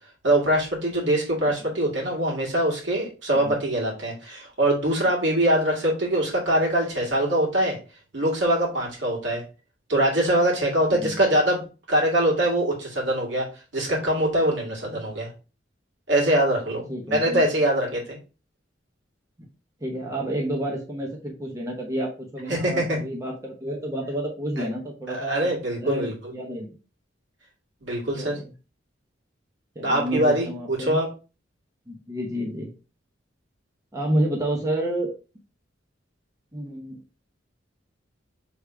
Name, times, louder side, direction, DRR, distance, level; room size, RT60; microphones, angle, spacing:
voice 1, 0.2-7.8 8.1-9.4 9.9-11.6 11.9-13.5 13.7-15.3 16.1-16.8 17.1-18.2 22.5-23.0 24.6-24.7 25.1-26.1 27.8-28.4 29.8-31.1, right 1 dB, 70° right, -2 dB, 1.9 m, -23 dB
voice 2, 10.9-11.2 16.9-17.4 19.8-25.5 25.8-26.7 28.2-28.5 29.8-31.0 31.9-32.7 33.9-35.1 36.5-37.2, right 1 dB, 20° right, -1 dB, 0.8 m, -30 dB
3.5 x 2.7 x 4.6 m, 0.33 s
head